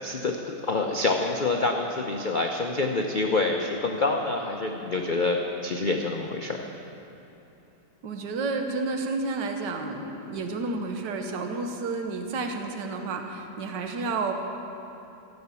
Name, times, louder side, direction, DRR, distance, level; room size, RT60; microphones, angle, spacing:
voice 1, 0.0-6.7, left 3 dB, 70° left, 2 dB, 0.4 m, -27 dB
voice 2, 8.0-14.3, right 3 dB, 80° right, 4 dB, 1.6 m, -31 dB
15.5 x 7.8 x 6.9 m, 2.9 s
omnidirectional pair, 1.9 m